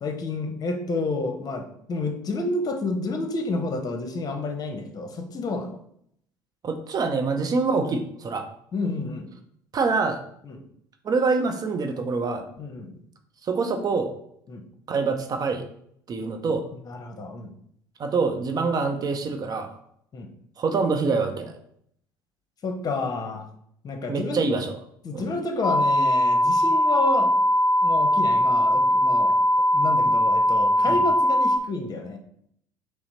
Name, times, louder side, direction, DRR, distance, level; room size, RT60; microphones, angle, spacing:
voice 1, 0.0-5.8 8.7-9.3 10.4-10.6 12.6-12.9 14.5-14.6 16.9-17.5 20.1-20.3 22.6-23.5 23.8-24.4 25.0-27.3 27.8-29.4 29.7-32.2, left 3 dB, 40° left, 6 dB, 0.8 m, -30 dB
voice 2, 6.6-8.5 9.7-10.2 11.0-12.4 13.4-14.1 14.9-15.6 16.1-16.7 18.0-19.8 20.6-21.5 24.1-24.7 25.1-25.3 30.8-31.0, right 4 dB, 40° right, 6 dB, 0.6 m, -25 dB
sound 1, 25.6-31.6, equal, 15° left, 0.4 m, -20 dB
5.6 x 2.0 x 4.1 m, 0.69 s
hypercardioid pair, 60°, 10 cm